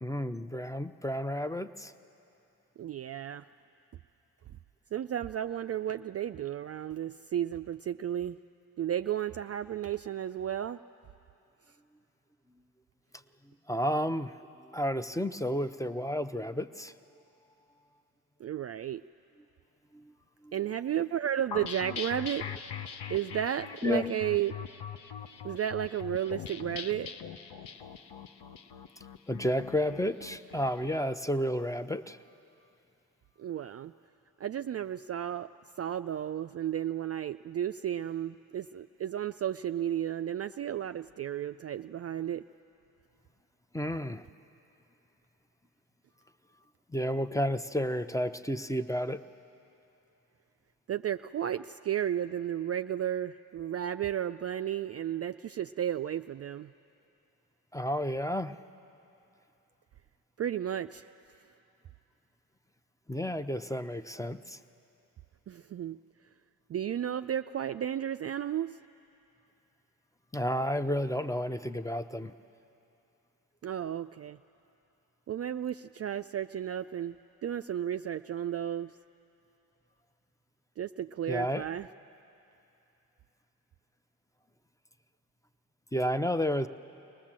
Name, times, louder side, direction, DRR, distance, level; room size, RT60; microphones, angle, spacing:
voice 1, 0.0-1.9 13.7-16.9 19.9-20.1 20.4-20.5 23.8-24.1 29.3-32.2 43.7-44.2 46.9-49.2 57.7-58.6 63.1-64.6 70.3-72.3 81.3-81.6 85.9-86.7, equal, 10° left, 11 dB, 0.7 m, -31 dB
voice 2, 2.8-3.5 4.9-8.4 8.8-10.8 18.4-19.0 20.5-22.5 23.1-24.6 25.4-27.1 33.4-33.9 34.4-35.5 35.8-42.5 50.9-56.7 60.4-61.1 65.5-66.0 66.7-68.8 73.6-74.4 75.3-77.2 77.4-78.9 80.8-81.9, right 10 dB, 40° right, 9 dB, 0.4 m, -33 dB
sound 1, 21.5-31.0, left 7 dB, 70° left, 0.9 m, -42 dB
23.0 x 19.0 x 7.5 m, 2.9 s
hypercardioid pair, 40°, 42 cm